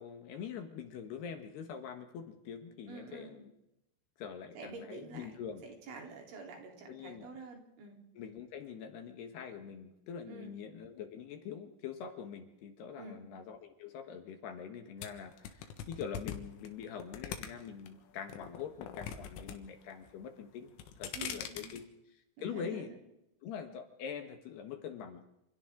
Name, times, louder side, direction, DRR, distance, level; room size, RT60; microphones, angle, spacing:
voice 1, 0.0-3.5 4.2-5.6 6.9-7.3 8.1-21.8 22.4-22.9 23.4-25.3, left 7 dB, 65° left, 6 dB, 3.2 m, -44 dB
voice 2, 2.9-3.3 4.6-5.3 5.6-8.0 10.3-10.5 13.0-13.2 21.1-21.8 22.4-22.9, right 4 dB, 75° right, 1 dB, 6.3 m, -48 dB
sound 1, 15.0-17.9 18.3-19.6 19.8-20.3 20.7-21.8, left 8 dB, 80° left, 4.1 m, -42 dB
29.0 x 27.0 x 3.9 m, 0.87 s
omnidirectional pair, 5.6 m